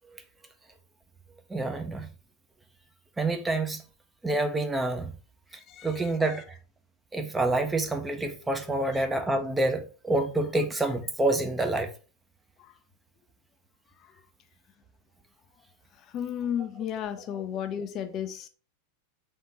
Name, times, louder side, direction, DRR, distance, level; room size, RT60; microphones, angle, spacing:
voice 1, 1.5-2.1 3.2-3.8 4.2-5.1 5.8-6.4 7.1-11.9, right 2 dB, 10° right, 0.6 m, -27 dB
voice 2, 16.1-18.5, left 9 dB, 35° left, 0.5 m, -32 dB
3.7 x 3.6 x 4.0 m
figure-of-eight pair, 90°, 0 cm